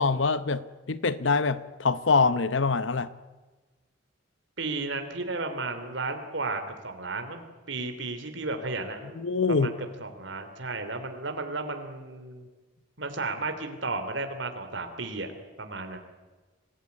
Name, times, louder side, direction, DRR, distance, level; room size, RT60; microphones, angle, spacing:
voice 1, 0.0-3.1 9.2-9.7, left 4 dB, 85° left, 15 dB, 0.9 m, -25 dB
voice 2, 4.6-9.2 9.5-9.7 10.0-12.5 13.0-15.3 15.6-16.0, right 3 dB, 75° right, 6 dB, 3.1 m, -33 dB
25.5 x 17.0 x 9.6 m, 1.3 s
head